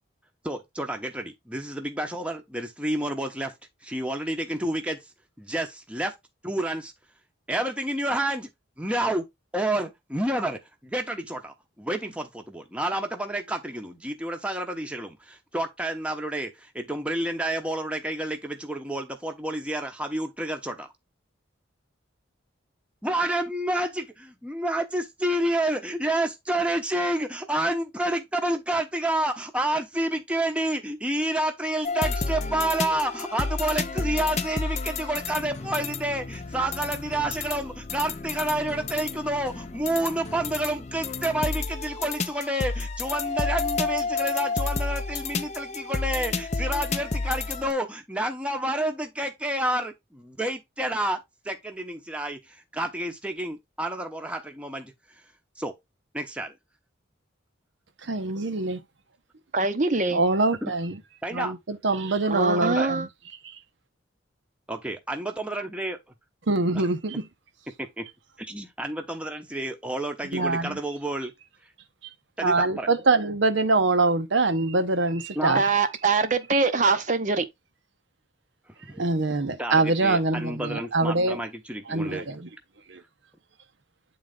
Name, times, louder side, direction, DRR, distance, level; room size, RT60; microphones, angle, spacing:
voice 1, 0.4-3.5 3.8-5.0 5.4-6.1 6.4-6.9 7.5-8.5 8.8-9.2 9.5-20.9 23.0-51.2 51.4-54.9 55.6-55.7 56.1-56.5 60.6-60.7 61.2-61.5 62.6-62.9 64.7-66.0 66.8-66.9 67.8-68.0 68.4-71.3 72.4-72.9 75.4-75.6 78.8-79.0 79.6-82.3, right 1 dB, 5° right, 0.8 m, -29 dB
sound 1, 31.8-47.7, left 4 dB, 35° left, 0.6 m, -31 dB
voice 2, 58.0-58.8 60.1-61.0 61.3-63.1 63.4-63.5 66.5-67.3 70.3-70.8 72.4-75.7 78.9-81.4 81.9-82.5 82.9-83.0, right 3 dB, 70° right, 0.8 m, -24 dB
voice 3, 59.5-60.2 62.3-63.1 75.5-77.4, right 4 dB, 40° right, 0.7 m, -23 dB
8.6 x 3.9 x 3.5 m
head